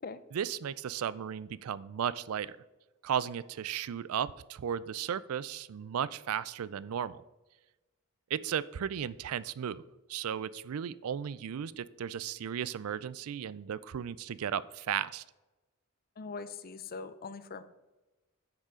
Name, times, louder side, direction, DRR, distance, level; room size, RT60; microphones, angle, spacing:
voice 1, 0.3-2.6 3.0-7.2 8.3-9.8 10.1-15.2, right 8 dB, 75° right, 19 dB, 0.4 m, -35 dB
voice 2, 16.2-17.6, left 4 dB, 45° left, 12 dB, 0.5 m, -41 dB
9.7 x 6.6 x 3.7 m, 1.1 s
head